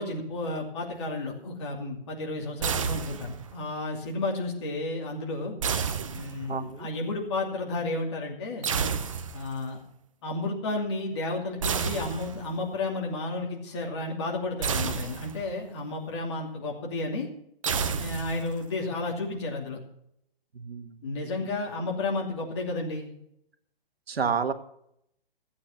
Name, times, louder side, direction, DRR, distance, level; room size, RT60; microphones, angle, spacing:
voice 1, 0.0-5.5 6.1-8.7 9.3-9.8 10.2-17.3 18.0-19.8 21.0-23.1, left 2 dB, 30° left, -1 dB, 2.7 m, -32 dB
sound 1, 2.6-3.6 5.6-6.7 8.6-9.6 11.6-12.6 14.6-15.6 17.6-18.6, right 6 dB, 35° right, 0.8 m, -30 dB
voice 2, 6.5-6.9 20.5-21.0 21.2-21.5 24.1-24.5, right 6 dB, 85° right, 9 dB, 1.6 m, -30 dB
14.5 x 8.8 x 5.9 m, 0.74 s
hypercardioid pair, 170°, 30 cm